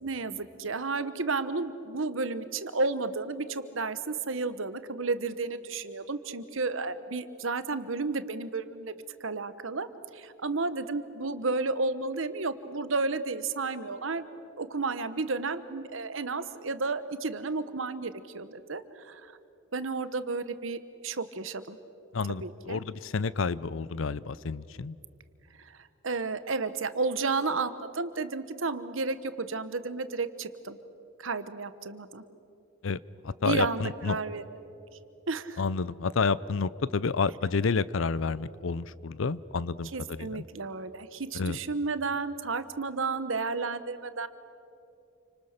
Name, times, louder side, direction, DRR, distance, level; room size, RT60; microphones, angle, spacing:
voice 1, 0.0-8.9 9.2-9.9 10.1-14.2 14.6-19.3 19.7-21.8 22.4-22.8 26.0-30.8 31.2-32.2 33.4-34.4 35.3-35.6 39.9-44.3, right 3 dB, 75° right, 12 dB, 1.2 m, -32 dB
voice 2, 22.1-25.0 32.8-33.0 33.2-34.2 35.6-40.4 41.3-41.6, left 4 dB, 70° left, 19 dB, 0.6 m, -30 dB
29.0 x 25.5 x 6.7 m, 2.8 s
head